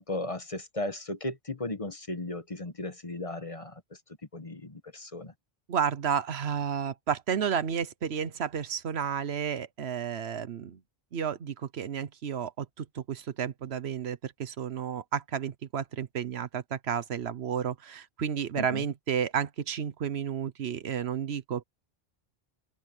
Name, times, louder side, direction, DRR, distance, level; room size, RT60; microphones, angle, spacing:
voice 1, 0.0-3.8 4.3-5.3 18.6-18.8, left 2 dB, 30° left, 1.3 m, -36 dB
voice 2, 5.7-10.8 11.1-21.6, right 8 dB, 75° right, 1.1 m, -32 dB
omnidirectional pair, 1.1 m